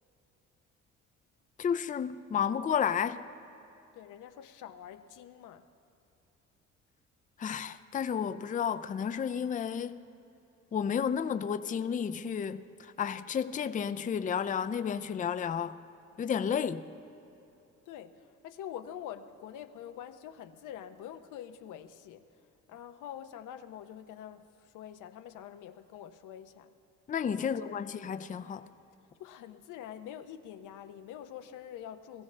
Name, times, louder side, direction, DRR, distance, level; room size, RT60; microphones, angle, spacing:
voice 1, 1.6-3.2 7.4-10.0 10.7-15.7 16.2-16.9 27.1-28.7, left 7 dB, 25° left, 0.4 m, -32 dB
voice 2, 3.9-5.7 17.9-22.3 22.7-26.7 27.4-27.9 29.2-32.2, left 10 dB, 85° left, 0.7 m, -46 dB
21.0 x 15.0 x 3.3 m
cardioid pair, 90°, 30 cm